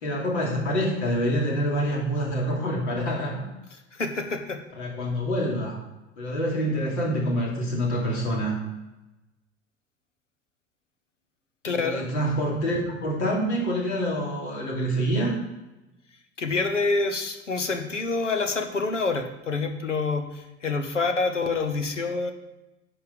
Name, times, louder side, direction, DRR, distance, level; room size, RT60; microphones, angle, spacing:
voice 1, 0.0-3.4 4.8-5.8 6.2-8.6 11.6-15.4, equal, 65° left, -2 dB, 2.9 m, -26 dB
voice 2, 3.9-4.6 11.6-12.1 16.4-22.3, left 3 dB, 85° left, 7 dB, 1.0 m, -27 dB
10.0 x 5.2 x 5.3 m, 1.0 s
figure-of-eight pair, 75°, 36 cm